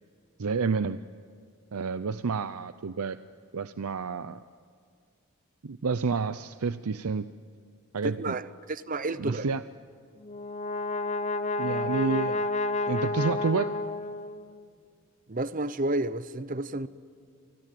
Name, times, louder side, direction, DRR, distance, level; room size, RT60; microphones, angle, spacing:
voice 1, 0.4-1.0 1.7-3.2 3.5-4.4 5.6-7.3 7.9-8.3 9.2-9.6 11.6-12.5 12.9-13.7, right 4 dB, 80° right, 0.6 m, -29 dB
voice 2, 8.0-9.5 15.3-16.9, right 2 dB, 35° right, 0.8 m, -31 dB
Brass instrument, 10.2-14.6, left 2 dB, 30° left, 0.8 m, -30 dB
29.0 x 24.0 x 7.7 m
head